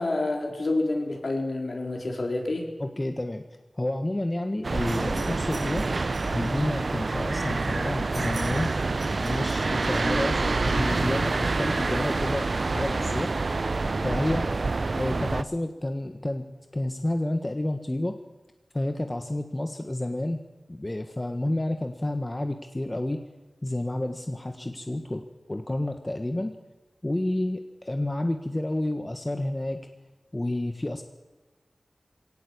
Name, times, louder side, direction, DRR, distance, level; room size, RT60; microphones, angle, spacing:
voice 1, 0.0-2.7, left 2 dB, 65° left, 2 dB, 4.4 m, -28 dB
voice 2, 2.8-3.5 3.8-5.9 6.3-8.7 9.2-13.3 14.0-14.5 15.0-16.5 16.7-18.2 18.7-20.4 20.7-23.2 23.6-26.6 27.0-29.9 30.3-31.0, left 1 dB, 25° left, 6 dB, 1.4 m, -30 dB
sound 1, 4.6-15.4, right 3 dB, 65° right, 0.6 m, -27 dB
23.0 x 17.5 x 8.7 m, 1.1 s
wide cardioid pair, 70°, 0 cm